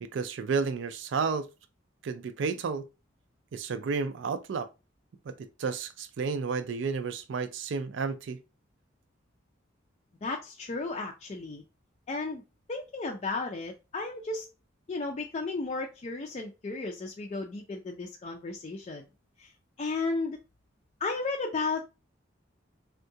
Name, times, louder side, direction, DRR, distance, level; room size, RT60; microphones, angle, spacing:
voice 1, 0.0-1.5 2.0-2.8 3.5-4.7 5.3-8.4, right 5 dB, 65° right, 0.4 m, -31 dB
voice 2, 10.2-11.6 12.1-12.4 12.7-14.5 14.9-19.0 19.4-19.5 19.8-20.4 21.0-21.8, left 3 dB, 35° left, 0.4 m, -34 dB
3.6 x 2.2 x 2.7 m
head